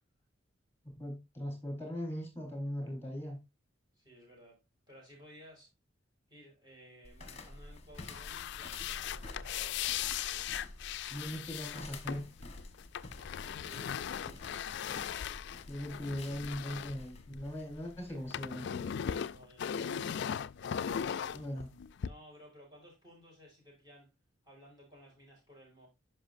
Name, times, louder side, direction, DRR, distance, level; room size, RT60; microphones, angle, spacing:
voice 1, 1.0-3.4 11.1-12.2 15.7-18.9 21.3-21.7, equal, 10° left, 4.0 m, -39 dB
voice 2, 4.0-4.6 4.9-5.7 6.3-10.1 13.4-14.6 19.3-20.2 22.0-24.1 24.4-25.9, equal, 20° right, 5.1 m, -57 dB
sound 1, 7.0-18.3, left 2 dB, 30° left, 1.1 m, -50 dB
sound 2, 7.9-17.7 18.0-22.1, left 8 dB, 60° left, 0.3 m, -38 dB
10.0 x 5.9 x 2.6 m
head